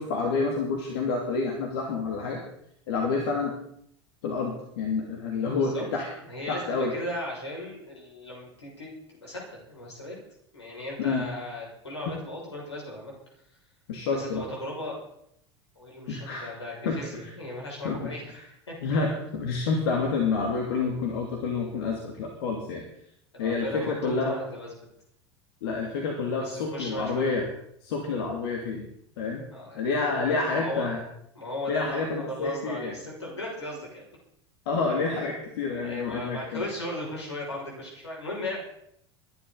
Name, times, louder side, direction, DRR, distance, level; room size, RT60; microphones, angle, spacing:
voice 1, 0.0-2.4 2.9-3.5 4.2-6.1 6.5-6.9 11.0-11.3 13.9-14.4 16.1-16.5 16.8-17.0 17.8-18.1 18.8-22.8 23.4-24.4 25.6-27.4 27.8-28.9 29.2-29.4 29.7-31.0 31.7-32.9 34.7-36.6, left 4 dB, 60° left, 1 dB, 2.7 m, -28 dB
voice 2, 5.5-5.8 6.2-10.2 10.5-13.1 14.1-15.0 15.8-18.4 18.7-18.8 23.3-24.7 26.4-27.2 29.5-30.9 31.3-34.1 35.7-38.6, left 1 dB, 80° left, -3 dB, 6.2 m, -37 dB
22.5 x 11.0 x 4.1 m, 0.72 s
figure-of-eight pair, 80°, 14 cm